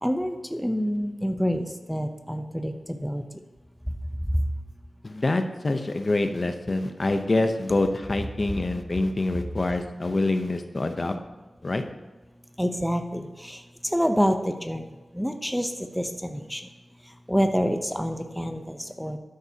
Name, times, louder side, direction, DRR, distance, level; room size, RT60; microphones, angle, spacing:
voice 1, 0.0-3.2 4.3-4.4 9.4-9.5 12.6-16.6 17.3-19.2, equal, ahead, 6 dB, 0.7 m, -27 dB
voice 2, 5.0-11.2 11.6-11.8, left 2 dB, 40° left, 7 dB, 0.8 m, -26 dB
12.5 x 10.5 x 2.9 m, 1.2 s
wide cardioid pair, 100°, 0 cm